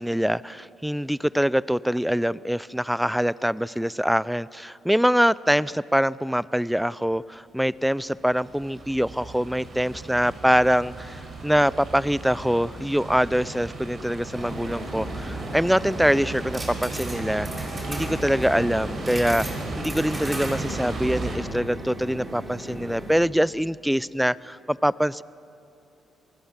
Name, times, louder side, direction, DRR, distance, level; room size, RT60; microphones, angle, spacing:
voice 1, 0.0-17.5 17.9-25.2, equal, ahead, 20 dB, 0.5 m, -24 dB
sound 1, 7.8-21.4, right 2 dB, 45° right, 6.8 m, -35 dB
sound 2, 14.3-23.2, right 1 dB, 20° right, 6.0 m, -36 dB
27.5 x 19.5 x 7.4 m, 2.8 s
cardioid pair, 90°, 0 cm